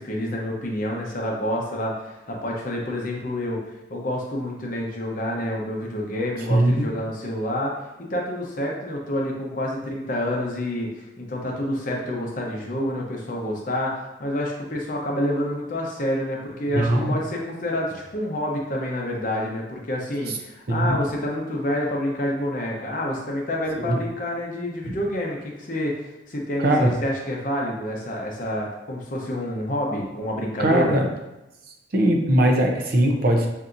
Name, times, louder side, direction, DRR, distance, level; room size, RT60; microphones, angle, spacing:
voice 1, 0.0-3.6 3.9-7.7 8.1-31.0, left 1 dB, 40° left, -1 dB, 0.7 m, -28 dB
voice 2, 6.5-6.9 16.7-17.2 20.3-20.4 20.7-21.0 23.8-24.0 26.6-26.9 30.6-31.1 31.9-33.5, right 1 dB, 50° right, 2 dB, 0.6 m, -20 dB
5.6 x 2.7 x 2.5 m, 0.97 s
head